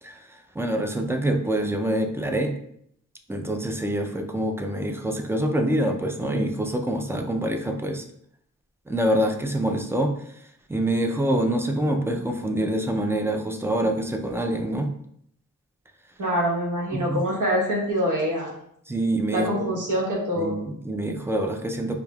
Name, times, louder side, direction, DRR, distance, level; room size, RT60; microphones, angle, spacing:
voice 1, 0.0-2.5 3.3-8.0 8.9-10.4 10.7-14.9 16.9-17.2 18.9-19.7 20.4-22.0, right 1 dB, 10° right, 4 dB, 0.4 m, -26 dB
voice 2, 16.2-18.5 19.3-20.5, equal, 70° right, -3 dB, 1.2 m, -25 dB
4.9 x 2.7 x 2.3 m, 0.70 s
wide cardioid pair, 110°, 32 cm